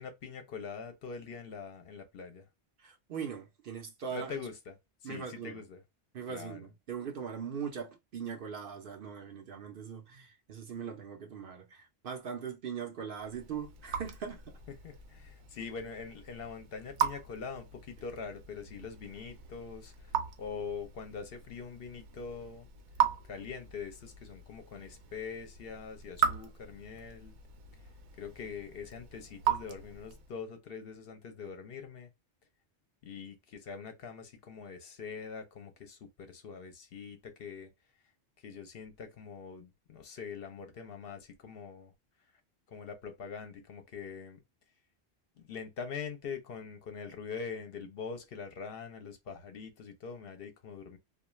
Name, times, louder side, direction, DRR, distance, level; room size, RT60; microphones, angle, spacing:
voice 1, 0.0-2.4 4.1-4.7 5.0-5.8 6.3-6.7 14.8-20.1 20.4-22.7 23.3-27.3 28.2-32.1 33.0-37.7 38.4-41.9 42.7-44.4 45.4-51.0, left 5 dB, 60° left, 0.8 m, -43 dB
voice 2, 2.8-4.3 5.0-5.6 6.1-14.6, right 7 dB, 60° right, 0.8 m, -40 dB
Raindrop / Drip, 13.2-30.4, right 9 dB, 90° right, 0.9 m, -38 dB
2.3 x 2.3 x 3.0 m
omnidirectional pair, 1.2 m